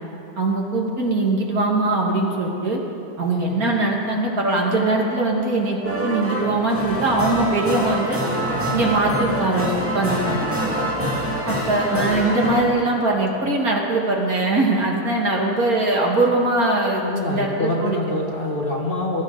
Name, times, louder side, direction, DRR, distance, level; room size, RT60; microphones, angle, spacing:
voice 1, 0.4-2.8 3.2-8.2 8.7-10.4 11.5-17.0 17.3-18.0, right 2 dB, 60° right, -1 dB, 2.2 m, -21 dB
sound 1, 5.8-12.6, equal, 10° right, 1.9 m, -25 dB
voice 2, 17.0-19.2, left 2 dB, 35° left, -2 dB, 1.6 m, -25 dB
21.5 x 12.5 x 3.9 m, 2.9 s
omnidirectional pair, 1.8 m